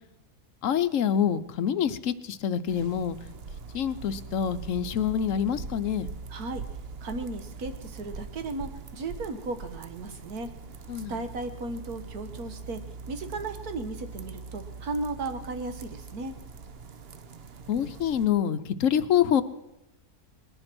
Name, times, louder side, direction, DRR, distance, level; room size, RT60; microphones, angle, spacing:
voice 1, 0.6-3.2 3.7-6.1 10.9-11.2 17.7-19.4, left 9 dB, 65° left, 12 dB, 1.0 m, -26 dB
sound 1, 2.7-18.3, right 4 dB, 50° right, 0.9 m, -42 dB
voice 2, 6.3-6.6 7.0-10.5 11.1-16.3, right 3 dB, 70° right, 9 dB, 1.7 m, -35 dB
20.0 x 10.5 x 6.1 m, 0.90 s
omnidirectional pair, 1.7 m